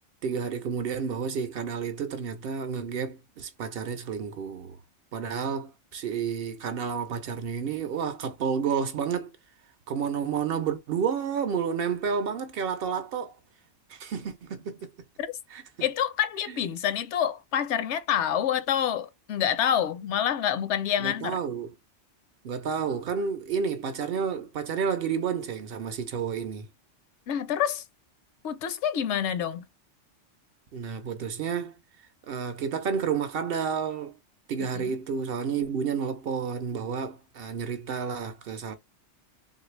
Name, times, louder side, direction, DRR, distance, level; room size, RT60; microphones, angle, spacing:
voice 1, 0.2-4.8 5.1-9.3 9.9-13.4 13.9-14.9 15.5-15.6 21.0-21.7 22.4-26.7 30.7-31.7 32.3-34.2 34.5-38.7, right 6 dB, 65° right, 0.7 m, -30 dB
voice 2, 15.8-21.4 27.3-27.8 28.4-29.7 34.7-35.0, left 9 dB, 75° left, 0.8 m, -27 dB
3.2 x 2.5 x 3.1 m
omnidirectional pair, 1.2 m